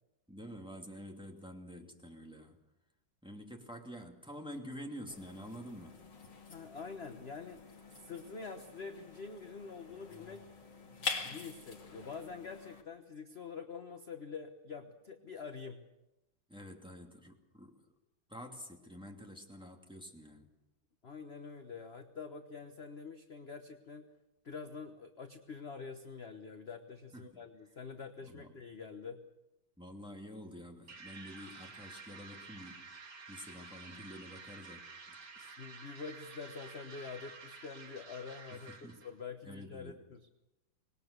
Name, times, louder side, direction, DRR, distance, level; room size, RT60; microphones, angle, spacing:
voice 1, 0.3-2.6 3.2-6.0 11.1-11.4 16.5-17.8 18.3-20.5 27.1-27.4 28.2-28.5 29.8-32.9 33.3-34.8 35.1-35.5 38.5-39.0 39.4-40.1, equal, ahead, 1 dB, 2.4 m, -48 dB
sound 1, 5.1-12.8, left 4 dB, 65° left, 3.2 m, -45 dB
voice 2, 6.5-7.6 8.0-10.4 11.2-15.8 21.0-24.1 24.4-29.2 35.6-40.2, left 5 dB, 35° left, 6 dB, 1.2 m, -46 dB
sound 2, 30.9-39.2, right 4 dB, 55° right, 2.6 m, -51 dB
25.5 x 20.5 x 6.7 m, 0.95 s
omnidirectional pair, 2.2 m